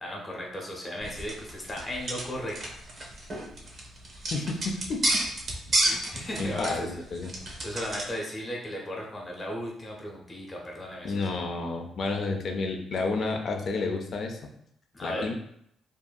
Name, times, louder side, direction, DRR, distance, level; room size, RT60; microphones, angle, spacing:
voice 1, 0.0-2.5 5.7-7.0 7.6-11.3 14.9-15.3, equal, 30° left, -1 dB, 0.8 m, -36 dB
sound 1, 1.0-8.1, right 1 dB, 45° right, 0.7 m, -32 dB
voice 2, 4.3-5.0 6.4-7.3 11.0-14.4 15.0-15.3, left 3 dB, 60° left, 3 dB, 0.5 m, -30 dB
2.6 x 2.5 x 2.3 m, 0.72 s
cardioid pair, 90°, 0 cm